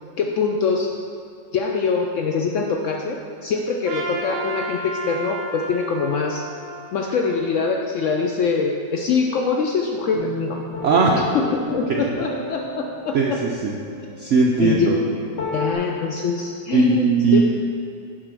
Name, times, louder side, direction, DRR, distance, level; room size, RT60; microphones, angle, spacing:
voice 1, 0.2-0.9 1.5-6.4 6.9-10.6 11.2-13.4 14.6-14.9 15.5-17.4, left 5 dB, 85° left, 1 dB, 0.6 m, -24 dB
Trumpet, 3.8-8.1, right 2 dB, 55° right, 1.2 m, -33 dB
sound 1, 10.1-15.7, left 1 dB, 40° left, 1.1 m, -31 dB
voice 2, 10.8-11.2 11.9-12.0 13.1-13.8 14.2-15.0 16.7-17.4, right 4 dB, 70° right, -1 dB, 0.7 m, -18 dB
7.4 x 4.9 x 6.1 m, 2.3 s
omnidirectional pair, 1.9 m